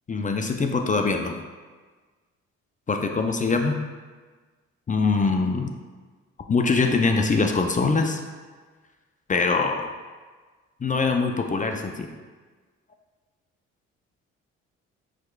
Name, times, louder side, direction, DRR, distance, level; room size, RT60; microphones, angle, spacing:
voice 1, 0.1-1.4 2.9-3.8 4.9-5.7 6.5-8.2 9.3-9.9 10.8-12.1, left 4 dB, 25° left, 4 dB, 0.5 m, -23 dB
4.6 x 4.3 x 2.3 m, 1.4 s
supercardioid pair, 55°, 31 cm